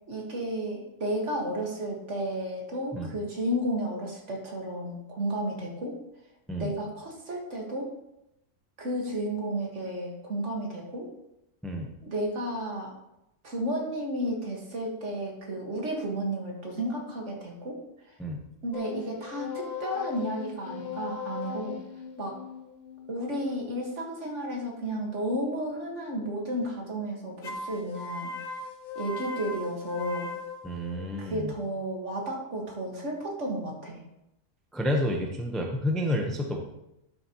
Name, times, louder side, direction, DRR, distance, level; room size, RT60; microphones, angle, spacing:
voice 1, 0.1-6.0 6.6-7.9 8.8-11.1 12.0-12.9 13.4-17.8 18.6-21.8 22.2-22.4 23.1-28.5 29.0-30.3 31.2-34.0, right 1 dB, 50° right, 0 dB, 2.0 m, -32 dB
voice 2, 11.6-11.9 18.2-18.4 30.6-31.5 34.7-36.6, left 1 dB, ahead, 1 dB, 0.7 m, -30 dB
sound 1, 18.7-24.1 27.4-31.4, left 5 dB, 45° left, 0.6 m, -39 dB
11.5 x 6.8 x 3.0 m, 0.86 s
omnidirectional pair, 1.6 m